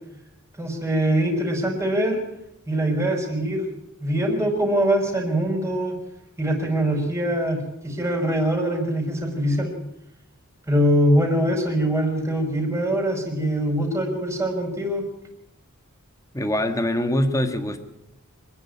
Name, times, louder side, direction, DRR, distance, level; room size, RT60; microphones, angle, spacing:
voice 1, 0.6-2.2 2.7-3.7 4.0-6.0 6.4-9.7 10.7-15.0, right 1 dB, 15° right, 2 dB, 5.5 m, -23 dB
voice 2, 16.3-17.8, left 1 dB, 15° left, 7 dB, 1.7 m, -23 dB
25.5 x 11.0 x 9.7 m, 0.84 s
head